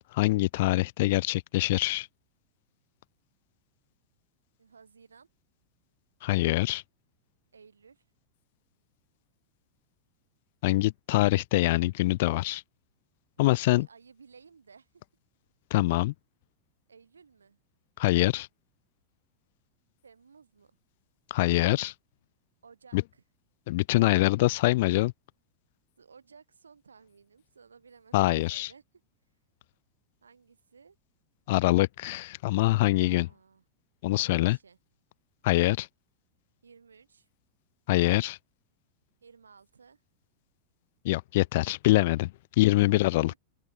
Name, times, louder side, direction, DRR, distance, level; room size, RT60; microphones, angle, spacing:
voice 1, 0.1-2.1 6.2-6.8 10.6-12.6 13.4-13.9 15.7-16.1 18.0-18.5 21.3-21.9 22.9-23.0 23.7-25.1 28.1-28.7 31.5-33.3 34.0-34.6 35.4-35.9 37.9-38.4 41.0-42.3 42.6-43.3, left 18 dB, 50° left, 0.4 m, -24 dB
voice 2, 4.6-5.3 7.5-8.1 13.4-15.0 16.9-17.6 20.0-20.8 22.6-23.2 26.0-28.8 30.2-31.0 32.9-33.6 34.1-34.8 36.6-37.3 39.2-40.0 42.5-42.8 43.1-43.4, right 5 dB, 75° right, 6.5 m, -56 dB
figure-of-eight pair, 90°, 0 cm